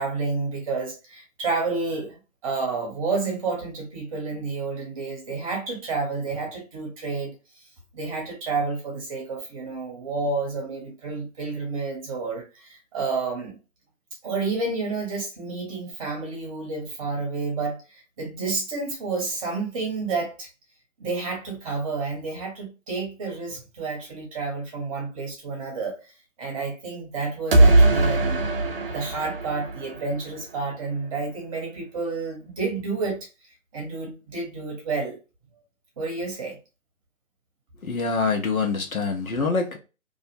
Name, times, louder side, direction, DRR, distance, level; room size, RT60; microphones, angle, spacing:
voice 1, 0.0-2.2 2.4-7.3 7.9-13.6 14.2-20.5 21.0-26.0 26.4-28.4 28.9-33.3 33.7-35.2 36.0-36.6, right 4 dB, 25° right, 0.9 m, -30 dB
sound 1, 27.5-30.4, right 2 dB, 45° right, 0.5 m, -20 dB
voice 2, 37.8-39.8, left 4 dB, 85° left, 0.9 m, -25 dB
2.5 x 2.0 x 2.5 m
figure-of-eight pair, 140°, 41 cm